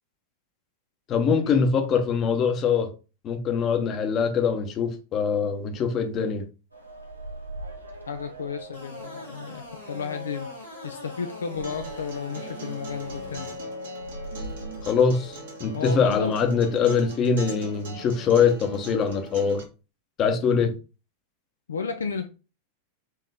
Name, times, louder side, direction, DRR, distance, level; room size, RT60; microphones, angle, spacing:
voice 1, 1.1-2.9 3.2-6.4 14.8-19.6 20.2-20.7, left 6 dB, 30° left, 0.8 m, -23 dB
sound 1, 6.7-16.5, left 1 dB, 85° right, 0.9 m, -40 dB
voice 2, 8.1-13.5 15.7-16.3 20.5-20.7 21.7-22.3, left 6 dB, 70° left, 0.4 m, -33 dB
sound 2, 8.7-13.5, equal, 90° left, 1.8 m, -44 dB
Acoustic guitar, 11.6-19.6, right 4 dB, 60° right, 1.3 m, -41 dB
4.4 x 3.0 x 3.4 m
figure-of-eight pair, 90°, 0 cm